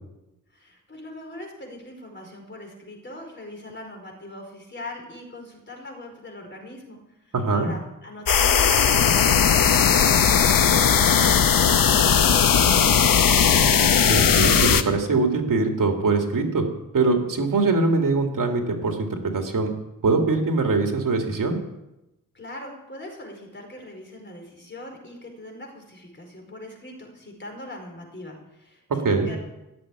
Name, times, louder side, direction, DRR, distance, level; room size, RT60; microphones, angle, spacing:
voice 1, 0.5-13.6 22.3-29.4, left 1 dB, 35° left, 1 dB, 4.6 m, -41 dB
voice 2, 7.3-7.7 14.1-16.6 16.9-19.7 20.0-21.6 29.0-29.3, right 3 dB, 70° right, 3 dB, 2.4 m, -22 dB
sound 1, 8.3-14.8, left 7 dB, 75° left, 1.0 m, -18 dB
15.0 x 7.7 x 9.8 m, 0.94 s
wide cardioid pair, 115°, 33 cm